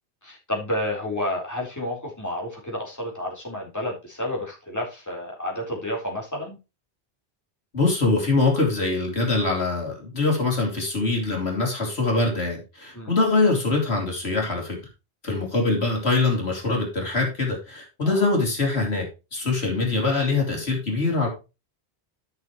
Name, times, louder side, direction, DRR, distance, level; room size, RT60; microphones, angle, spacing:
voice 1, 0.2-6.6 12.9-13.2 18.0-18.2, left 1 dB, 15° left, -3 dB, 3.8 m, -30 dB
voice 2, 7.7-14.8 15.2-21.3, left 3 dB, 75° left, 0 dB, 3.3 m, -23 dB
13.0 x 6.6 x 3.1 m, 0.28 s
omnidirectional pair, 1.1 m